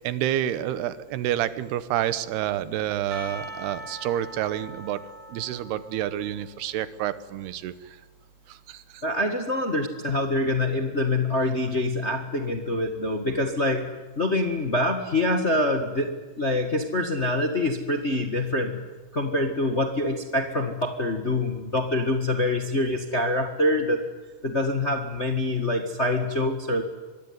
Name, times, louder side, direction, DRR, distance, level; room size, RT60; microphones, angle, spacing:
voice 1, 0.0-5.0 5.3-8.0 8.5-9.0, right 11 dB, 85° right, 14 dB, 3.1 m, -29 dB
Percussion, 3.1-7.0, right 1 dB, 40° right, 6.6 m, -42 dB
voice 2, 9.0-13.9 14.2-18.8 19.1-24.0 24.4-26.8, left 1 dB, 50° left, 5 dB, 0.7 m, -25 dB
24.5 x 22.5 x 9.7 m, 1.2 s
omnidirectional pair, 4.5 m